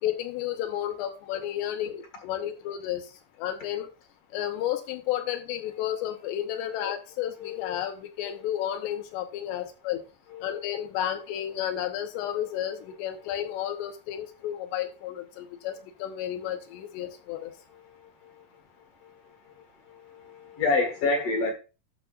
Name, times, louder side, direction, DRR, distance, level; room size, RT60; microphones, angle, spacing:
voice 1, 0.0-3.1 3.4-3.9 4.3-10.0 10.4-17.5, left 11 dB, 85° left, 3.2 m, -32 dB
voice 2, 7.4-7.8 10.3-10.4 17.9-18.4 19.0-19.5 19.8-21.5, left 3 dB, 65° left, 1.6 m, -30 dB
11.5 x 6.7 x 2.4 m
omnidirectional pair, 4.9 m